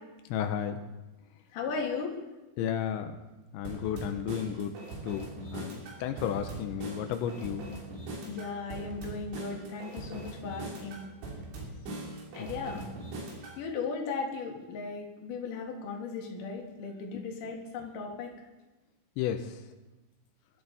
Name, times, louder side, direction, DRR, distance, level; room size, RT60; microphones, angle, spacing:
voice 1, 0.3-0.8 2.6-3.2 3.5-4.8 5.0-7.6 12.4-12.5 12.7-12.9 19.2-19.7, left 9 dB, 85° left, 6 dB, 3.1 m, -33 dB
voice 2, 1.5-2.1 8.2-11.0 12.3-12.9 13.6-18.3, left 4 dB, 55° left, 0 dB, 3.2 m, -36 dB
sound 1, 3.6-13.6, right 2 dB, 85° right, 5.5 m, -41 dB
21.5 x 12.5 x 4.1 m, 1.1 s
omnidirectional pair, 5.2 m